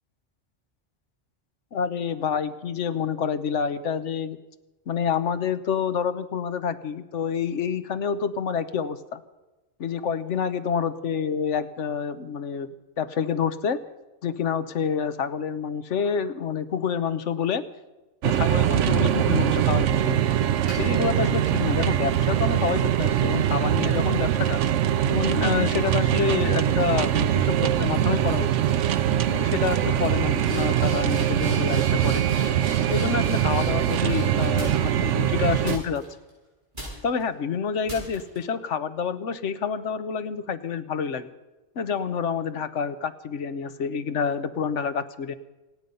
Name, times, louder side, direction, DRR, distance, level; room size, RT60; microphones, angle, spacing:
voice 1, 1.7-4.4 4.9-9.2 9.8-12.7 13.0-13.8 14.2-17.6 18.2-20.2 20.8-24.6 25.1-28.5 29.3-32.3 32.9-36.0 37.0-41.3 41.8-45.3, left 7 dB, 85° left, 12 dB, 1.2 m, -28 dB
sound 1, 18.2-35.8, right 11 dB, 90° right, 1.0 m, -23 dB
sound 2, 20.7-21.7 22.3-25.9 26.3-26.7 27.4-27.6 27.9-28.3 28.6-29.0 29.3-29.4 29.6-35.1 35.6-36.3 36.7-37.2 37.9-38.4, right 1 dB, 45° right, 7.5 m, -42 dB
27.0 x 9.2 x 5.5 m, 1.1 s
omnidirectional pair, 1.2 m